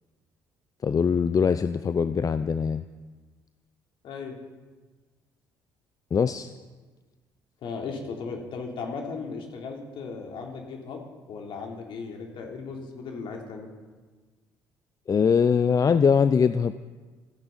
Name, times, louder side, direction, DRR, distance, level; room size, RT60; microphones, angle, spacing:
voice 1, 0.8-2.9 6.1-6.5 15.1-16.7, left 6 dB, 35° left, 12 dB, 0.6 m, -22 dB
voice 2, 4.0-4.4 7.6-11.0 11.3-13.7, left 4 dB, 60° left, 1 dB, 3.5 m, -36 dB
28.0 x 10.5 x 4.1 m, 1.3 s
hypercardioid pair, 50°, 10 cm